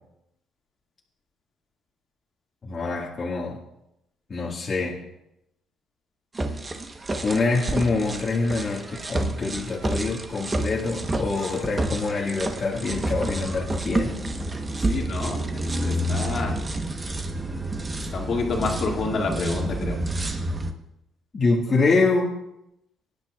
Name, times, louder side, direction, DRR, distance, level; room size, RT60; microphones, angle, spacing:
voice 1, 2.6-3.6 4.3-5.0 7.2-14.1 21.3-22.3, left 3 dB, 35° left, -4 dB, 1.8 m, -25 dB
sound 1, 6.3-20.7, right 1 dB, 25° right, 1.1 m, -29 dB
voice 2, 14.9-16.6 18.1-20.0, left 3 dB, 50° left, 0 dB, 2.1 m, -28 dB
19.0 x 10.0 x 2.4 m, 0.85 s
cardioid pair, 105°, 0 cm